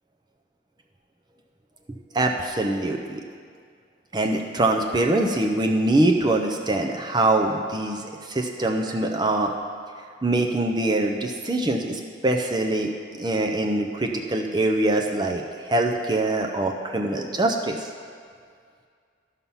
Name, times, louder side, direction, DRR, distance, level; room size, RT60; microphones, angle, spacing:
voice 1, 2.1-3.2 4.1-9.5 10.2-12.9 13.2-17.9, right 2 dB, 20° right, 2 dB, 0.5 m, -23 dB
12.5 x 5.7 x 5.5 m, 2.1 s
head